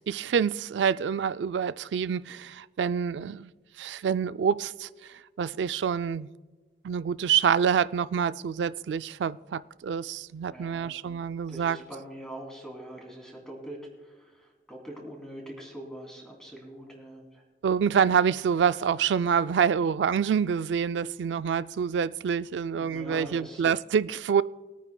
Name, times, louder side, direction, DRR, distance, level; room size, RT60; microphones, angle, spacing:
voice 1, 0.0-3.5 3.8-4.9 5.4-6.3 6.8-11.8 17.6-24.4, right 7 dB, 90° right, 0.3 m, -26 dB
voice 2, 10.5-10.9 11.5-13.8 14.1-17.4 22.7-23.7, right 1 dB, 5° left, 2.7 m, -43 dB
23.0 x 9.2 x 2.2 m
head